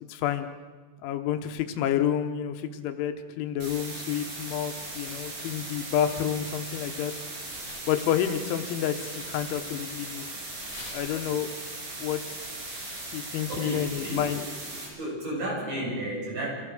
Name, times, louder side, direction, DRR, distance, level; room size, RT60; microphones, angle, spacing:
voice 1, 0.1-0.5 1.0-7.1 7.9-10.3 10.9-11.5 12.0-12.2 12.7-14.4, left 10 dB, 85° left, 7 dB, 3.5 m, -29 dB
sound 1, 3.6-14.9, right 2 dB, 70° right, 7.3 m, -38 dB
sound 2, 4.6-13.1, left 2 dB, 25° left, 2.2 m, -51 dB
voice 2, 13.5-14.2 15.0-16.5, right 1 dB, 45° right, -4 dB, 9.1 m, -32 dB
26.0 x 16.0 x 6.6 m, 1.3 s
omnidirectional pair, 5.4 m